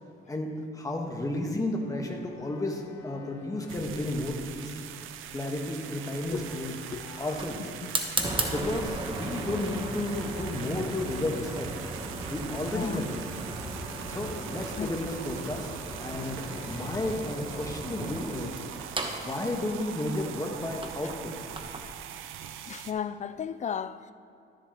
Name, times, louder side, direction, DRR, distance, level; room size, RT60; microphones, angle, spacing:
voice 1, 0.3-4.8 5.3-6.8 7.2-7.6 8.5-11.7 12.2-13.1 14.1-18.6 19.2-21.3, left 1 dB, 15° left, 1.3 m, -32 dB
sound 1, 1.7-19.3, left 4 dB, 80° left, 1.8 m, -52 dB
sound 2, 3.7-22.9, right 10 dB, 90° right, 0.5 m, -42 dB
Fire, 6.2-21.9, right 2 dB, 25° right, 1.0 m, -37 dB
voice 2, 8.2-8.5 12.7-13.0 14.8-14.9 22.7-24.1, left 8 dB, 35° left, 0.4 m, -35 dB
12.5 x 7.6 x 3.0 m
cardioid pair, 90°, 20 cm